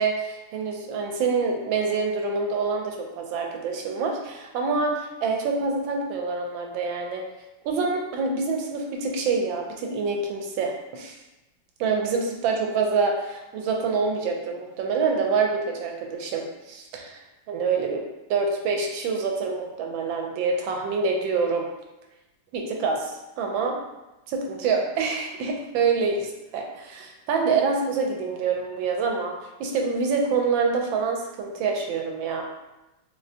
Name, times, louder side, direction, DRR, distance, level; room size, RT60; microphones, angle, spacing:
voice 1, 0.0-7.2 7.6-11.2 11.8-17.2 17.5-18.0 18.3-21.7 22.5-23.1 23.4-23.8 24.3-26.3 26.5-29.3 29.6-32.4, right 4 dB, 85° right, 2 dB, 1.3 m, -26 dB
3.9 x 2.1 x 2.6 m, 1.0 s
omnidirectional pair, 2.0 m